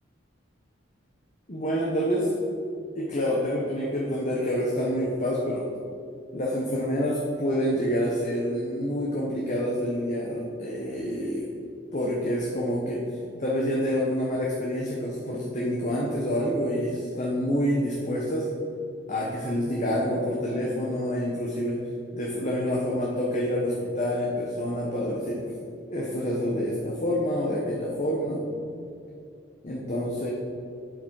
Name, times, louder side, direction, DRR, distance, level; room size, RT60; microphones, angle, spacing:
voice 1, 1.5-2.3 2.9-5.7 6.3-11.5 11.9-13.0 13.4-18.5 19.1-21.9 22.1-25.4 25.9-28.5 29.6-30.3, equal, 40° left, -3 dB, 1.2 m, -27 dB
8.8 x 8.0 x 4.8 m, 2.6 s
head